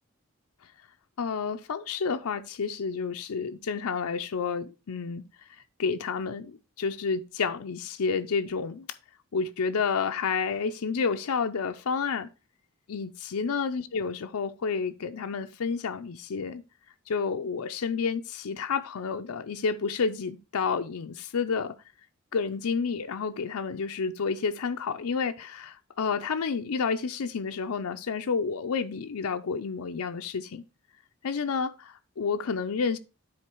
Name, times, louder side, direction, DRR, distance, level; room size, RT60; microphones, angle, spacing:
voice 1, 1.2-5.2 5.8-8.9 9.3-12.3 12.9-16.6 17.1-21.7 22.3-30.6 31.2-33.0, left 5 dB, 90° left, 0.5 m, -30 dB
9.7 x 3.9 x 4.6 m
head